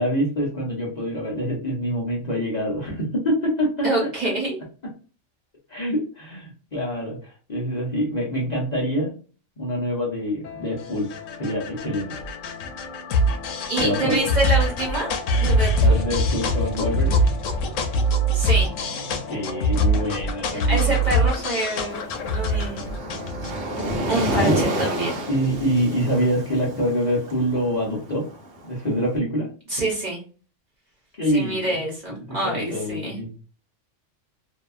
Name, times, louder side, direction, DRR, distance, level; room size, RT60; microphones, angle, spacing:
voice 1, 0.0-4.3 5.7-9.1 9.6-11.1 11.4-12.2 13.8-14.3 15.8-17.2 19.3-20.9 24.4-24.6 25.3-28.3 28.6-29.5 31.1-31.8 32.1-33.3, equal, 40° left, -4 dB, 0.7 m, -25 dB
voice 2, 3.8-4.6 13.7-15.1 15.4-16.0 18.3-18.7 20.7-22.1 22.3-22.9 24.1-25.2 29.7-30.2 31.3-33.2, right 1 dB, 40° right, -3 dB, 0.9 m, -26 dB
sound 1, 10.4-26.0, equal, 90° left, 0.9 m, -24 dB
Waves surf, 21.9-29.0, right 1 dB, 65° right, 1.0 m, -29 dB
2.7 x 2.2 x 2.3 m, 0.37 s
omnidirectional pair, 1.3 m